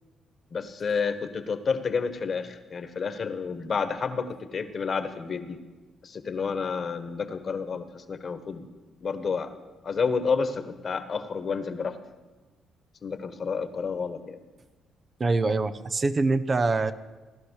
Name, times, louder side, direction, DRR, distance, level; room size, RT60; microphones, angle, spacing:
voice 1, 0.5-5.6 6.0-8.7 9.0-9.5 9.8-12.0 13.0-14.4, left 5 dB, 45° left, 10 dB, 1.4 m, -30 dB
voice 2, 15.2-16.9, right 3 dB, 35° right, 12 dB, 0.8 m, -24 dB
17.5 x 11.5 x 6.6 m, 1.3 s
cardioid pair, 90°, 0 cm